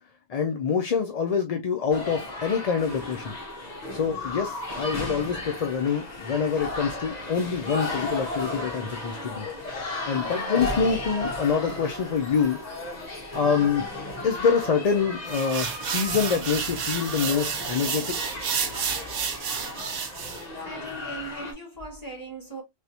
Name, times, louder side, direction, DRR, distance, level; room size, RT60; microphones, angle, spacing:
voice 1, 0.3-3.4 3.9-9.5 10.1-12.6 13.3-13.9 14.2-18.1, left 6 dB, 60° left, 0.4 m, -26 dB
sound 1, 1.9-21.5, left 2 dB, 35° left, 1.1 m, -35 dB
sound 2, 15.3-20.4, right 6 dB, 80° right, 1.1 m, -30 dB
voice 2, 20.6-22.6, right 2 dB, 15° left, 1.4 m, -39 dB
3.4 x 2.8 x 2.7 m
omnidirectional pair, 1.3 m